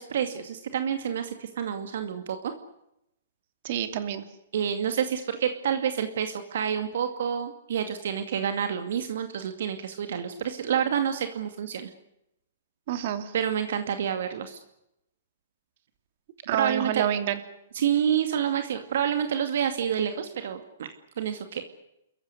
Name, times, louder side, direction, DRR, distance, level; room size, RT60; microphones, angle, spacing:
voice 1, 0.0-2.5 4.5-11.9 13.3-14.6 16.5-17.0 17.7-20.9 21.2-21.6, right 8 dB, 65° right, 7 dB, 2.3 m, -28 dB
voice 2, 3.6-4.2 12.9-13.3 16.5-17.4, right 10 dB, 50° right, 9 dB, 2.9 m, -28 dB
29.0 x 15.0 x 9.8 m, 0.84 s
hypercardioid pair, 150°, 0 cm